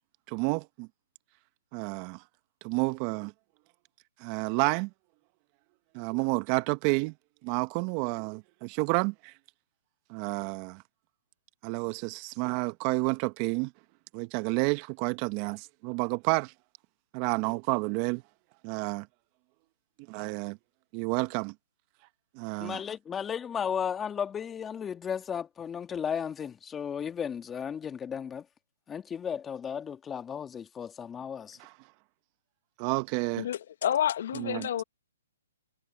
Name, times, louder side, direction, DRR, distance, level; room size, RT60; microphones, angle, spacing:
voice 1, 0.3-0.9 1.7-2.2 2.6-3.3 4.2-4.9 5.9-7.1 7.4-9.3 10.1-10.8 11.6-13.7 14.1-16.5 17.1-18.2 18.6-19.1 20.1-20.6 20.9-21.5 22.4-22.8 31.6-31.7 32.8-33.4 34.4-34.7, right 27 dB, 35° right, 1.2 m, -30 dB
voice 2, 22.6-28.4 28.9-31.6, left 7 dB, 15° left, 1.9 m, -34 dB
voice 3, 33.4-34.8, left 10 dB, 60° left, 1.5 m, -29 dB
hypercardioid pair, 140°, 0 cm